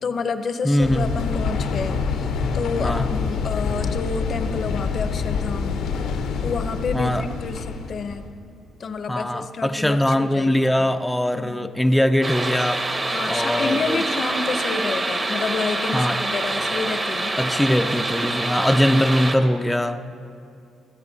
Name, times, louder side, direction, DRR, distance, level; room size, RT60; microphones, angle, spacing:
voice 1, 0.0-5.8 6.4-8.2 8.8-10.9 11.3-11.7 13.1-17.3, left 4 dB, 50° left, 10 dB, 0.6 m, -29 dB
voice 2, 0.6-1.1 2.8-3.1 6.9-7.3 9.1-12.9 13.3-14.0 15.9-16.2 17.4-20.0, equal, 5° left, 6 dB, 0.4 m, -21 dB
sound 1, 0.8-8.3, left 5 dB, 85° left, 0.7 m, -26 dB
sound 2, 12.2-19.4, right 2 dB, 25° right, 0.9 m, -26 dB
23.5 x 8.6 x 2.7 m, 2.4 s
cardioid pair, 90°, 0 cm